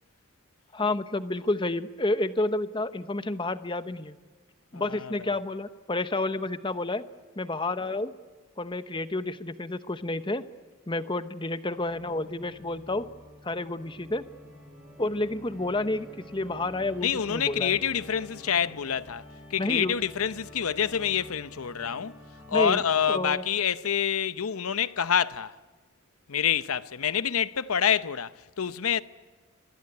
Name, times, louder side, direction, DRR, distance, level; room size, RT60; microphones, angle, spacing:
voice 1, 0.7-4.2 4.7-7.0 7.4-8.1 8.6-10.4 10.9-13.1 13.4-14.2 15.0-17.8 19.6-19.9 22.5-22.8 23.1-23.4, left 2 dB, 20° left, 0.9 m, -30 dB
voice 2, 4.7-5.3 17.0-19.2 19.5-22.1 22.5-25.5 26.3-29.0, left 8 dB, 85° left, 0.8 m, -27 dB
Organ, 11.6-23.5, equal, 5° right, 6.0 m, -49 dB
27.0 x 22.0 x 9.7 m
head